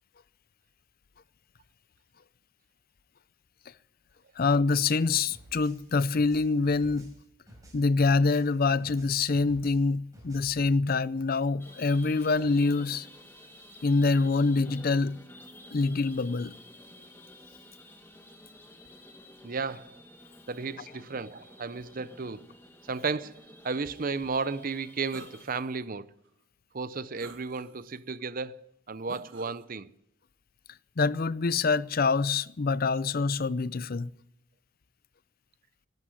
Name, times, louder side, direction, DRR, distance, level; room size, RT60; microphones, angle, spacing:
voice 1, 4.4-7.1 7.7-13.1 13.8-15.2 15.7-16.5 31.0-34.1, left 4 dB, 45° left, 0.5 m, -25 dB
sound 1, 5.3-8.5 8.8-10.6, right 1 dB, 15° right, 4.8 m, -52 dB
sound 2, 11.6-25.4, left 1 dB, 10° left, 1.8 m, -51 dB
voice 2, 19.4-20.0 20.5-22.5 22.9-23.4 23.6-26.1 26.7-29.9, right 4 dB, 40° right, 0.6 m, -34 dB
sound 3, 25.1-25.7 26.3-26.4 27.2-28.0 29.1-29.6, right 2 dB, 60° right, 1.8 m, -47 dB
12.5 x 12.0 x 9.5 m
head